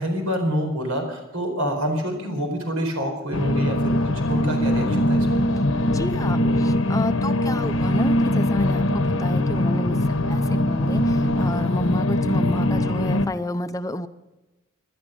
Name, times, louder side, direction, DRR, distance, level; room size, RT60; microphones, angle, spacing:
voice 1, 0.0-5.4, equal, 85° right, 4 dB, 4.6 m, -27 dB
sound 1, 3.3-13.3, left 1 dB, 65° left, 1.0 m, -22 dB
voice 2, 5.9-14.1, left 1 dB, 15° left, 10 dB, 0.5 m, -29 dB
19.0 x 12.0 x 5.2 m, 1.0 s
head